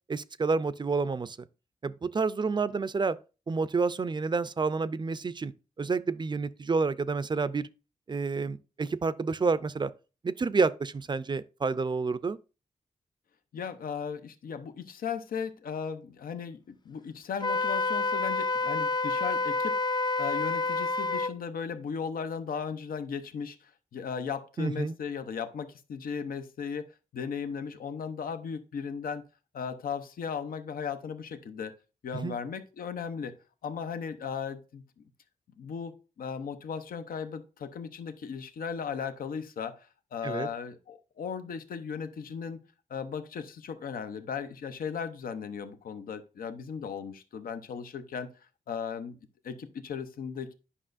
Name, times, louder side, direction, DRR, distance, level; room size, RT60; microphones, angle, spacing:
voice 1, 0.1-1.4 1.8-3.2 3.5-5.5 5.8-7.7 8.1-9.9 10.2-12.4 24.6-25.0 32.2-32.4 40.2-40.5, right 4 dB, 30° right, 0.4 m, -29 dB
voice 2, 13.5-19.8 20.2-29.2 29.5-31.7 32.0-33.4 33.6-34.8 35.6-42.6 42.9-48.3 48.7-49.2 49.4-50.5, left 6 dB, 85° left, 0.7 m, -36 dB
Wind instrument woodwind instrument, 17.4-21.3, left 3 dB, 30° left, 0.4 m, -28 dB
9.9 x 5.5 x 2.5 m
cardioid pair, 80°, 15 cm